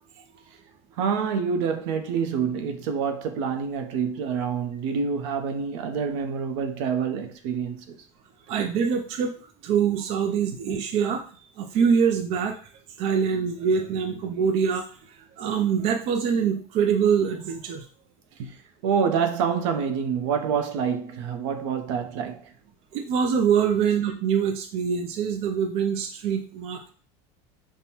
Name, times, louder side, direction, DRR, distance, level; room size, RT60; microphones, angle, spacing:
voice 1, 1.0-8.0 18.4-18.5 18.8-22.4, right 6 dB, 75° right, 0.7 m, -27 dB
voice 2, 8.5-9.3 9.6-11.2 11.6-12.6 13.0-14.9 15.4-17.8 22.9-26.9, right 7 dB, 40° right, 0.4 m, -24 dB
5.4 x 2.2 x 2.9 m
cardioid pair, 160°, 15 cm